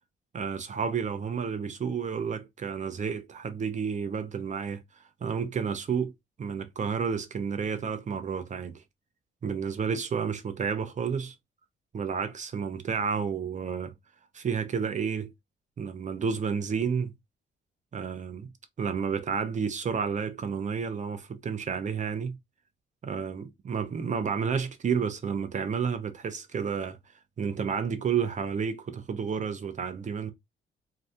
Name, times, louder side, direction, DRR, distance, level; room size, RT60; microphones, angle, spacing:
voice 1, 0.3-4.8 5.2-6.1 6.4-8.8 9.4-11.3 11.9-13.9 14.3-15.3 15.8-17.1 17.9-18.5 18.8-22.4 23.0-27.0 27.4-30.3, right 6 dB, 40° right, 0.6 m, -31 dB
2.7 x 2.3 x 3.4 m
cardioid pair, 90°, 20 cm